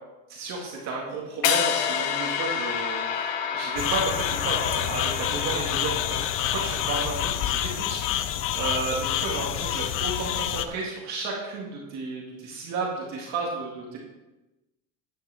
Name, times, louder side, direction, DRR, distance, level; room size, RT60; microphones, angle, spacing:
voice 1, 0.3-8.0 8.5-14.0, right 3 dB, 45° right, -2 dB, 1.9 m, -32 dB
sound 1, 1.4-7.6, left 8 dB, 75° left, 1.1 m, -29 dB
sound 2, 3.8-10.7, left 11 dB, 35° left, 0.4 m, -28 dB
10.0 x 9.5 x 3.5 m, 1.1 s
cardioid pair, 150°, 37 cm